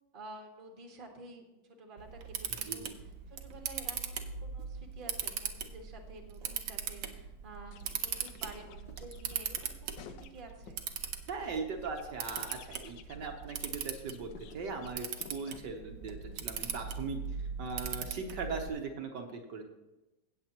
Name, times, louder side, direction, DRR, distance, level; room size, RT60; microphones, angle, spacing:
voice 1, 0.1-10.8, right 2 dB, 30° right, 2 dB, 1.5 m, -51 dB
Camera, 2.0-18.7, right 7 dB, 90° right, 1.6 m, -40 dB
voice 2, 2.6-3.0 11.3-19.6, right 4 dB, 70° right, 3 dB, 1.6 m, -39 dB
sound 1, 7.7-10.8 11.2-15.6, left 10 dB, 80° left, 1.3 m, -54 dB
16.5 x 7.6 x 2.9 m, 1.0 s
omnidirectional pair, 2.0 m